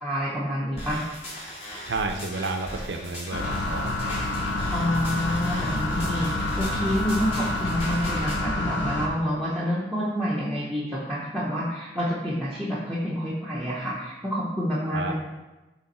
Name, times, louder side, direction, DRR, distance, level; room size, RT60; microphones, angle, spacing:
voice 1, 0.0-1.0 4.7-15.1, equal, ahead, -8 dB, 0.8 m, -28 dB
sound 1, 0.8-8.4, equal, 35° left, 1.9 m, -38 dB
voice 2, 1.9-4.2 14.9-15.1, right 3 dB, 70° right, 5 dB, 0.6 m, -31 dB
sound 2, 3.3-9.1, left 1 dB, 85° left, 0.8 m, -28 dB
6.9 x 3.5 x 4.2 m, 1.1 s
head